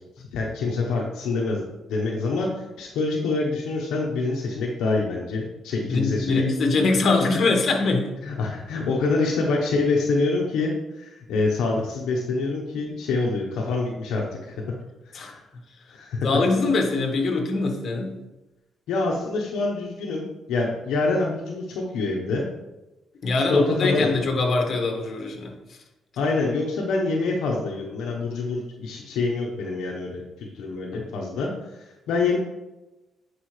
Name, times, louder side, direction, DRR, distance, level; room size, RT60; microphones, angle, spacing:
voice 1, 0.3-6.4 8.2-14.5 15.1-15.4 15.9-16.3 18.9-22.5 23.5-24.2 26.2-32.4, left 3 dB, 85° left, -1 dB, 1.0 m, -26 dB
voice 2, 5.9-8.4 15.1-15.3 16.2-18.1 23.2-25.5, left 3 dB, 50° left, 2 dB, 1.6 m, -23 dB
10.0 x 5.1 x 3.3 m, 1.0 s
cardioid pair, 90°, 0 cm